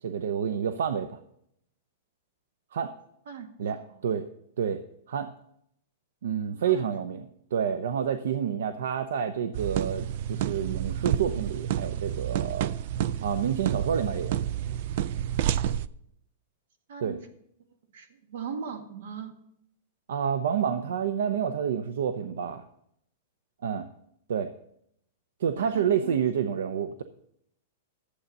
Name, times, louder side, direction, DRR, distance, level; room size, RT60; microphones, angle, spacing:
voice 1, 0.0-1.2 2.7-2.9 3.6-4.3 4.6-4.8 5.1-5.3 6.2-12.7 13.1-14.4 17.0-17.2 20.1-22.6 23.6-23.9 24.3-24.5 25.4-27.0, right 8 dB, 80° right, 10 dB, 0.7 m, -29 dB
sound 1, 9.5-15.9, right 10 dB, 45° right, 0.3 m, -29 dB
voice 2, 16.9-17.2 17.9-19.3 25.6-26.2, right 7 dB, 65° right, 6 dB, 1.8 m, -39 dB
11.5 x 8.0 x 5.4 m, 0.74 s
supercardioid pair, 170°, 0 cm